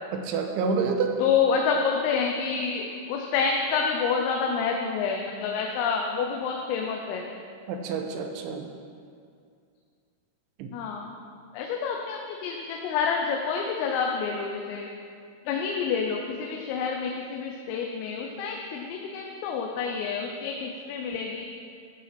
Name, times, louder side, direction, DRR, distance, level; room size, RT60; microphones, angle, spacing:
voice 1, 0.1-1.1 7.7-8.7 10.6-10.7, right 5 dB, 80° right, 4 dB, 3.1 m, -28 dB
voice 2, 1.2-7.3 10.7-11.1 11.5-14.9 15.5-21.5, left 6 dB, 85° left, 1 dB, 3.5 m, -28 dB
14.5 x 7.8 x 5.9 m, 2.3 s
omnidirectional pair, 5.8 m